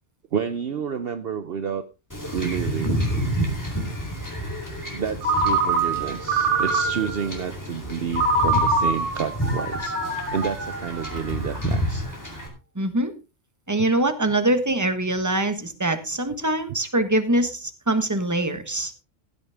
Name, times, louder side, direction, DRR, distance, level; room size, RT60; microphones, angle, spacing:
voice 1, 0.3-1.8 2.3-3.0 4.9-10.0 10.3-12.1 16.7-16.8, right 7 dB, 55° right, 11 dB, 0.9 m, -29 dB
Wind / Ocean / Boat Water vehicle, 2.1-12.5, equal, 15° left, 3.8 m, -30 dB
Ringtone, 5.2-7.3 8.1-11.5, right 2 dB, 35° right, 5.7 m, -24 dB
voice 2, 12.7-13.1 13.7-18.9, right 1 dB, 15° right, 9 dB, 1.4 m, -23 dB
15.5 x 9.7 x 3.6 m, 0.28 s
omnidirectional pair, 1.3 m